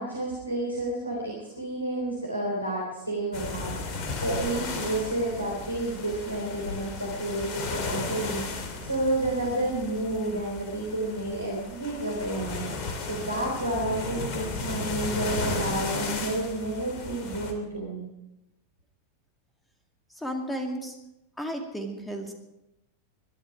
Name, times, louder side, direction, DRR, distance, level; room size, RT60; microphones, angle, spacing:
voice 1, 0.0-18.1, right 1 dB, 90° right, -2 dB, 3.7 m, -30 dB
sound 1, 3.3-17.5, left 3 dB, 40° left, 3.0 m, -35 dB
sound 2, 3.9-5.6 6.3-7.7 8.2-8.3 9.2-10.3 11.3-11.4 14.5-16.2 16.9-17.0, left 2 dB, 70° left, 3.0 m, -44 dB
voice 2, 20.2-20.9 21.4-22.3, equal, 5° left, 3 dB, 2.3 m, -33 dB
22.5 x 11.5 x 4.9 m, 0.93 s
figure-of-eight pair, 90°, 0 cm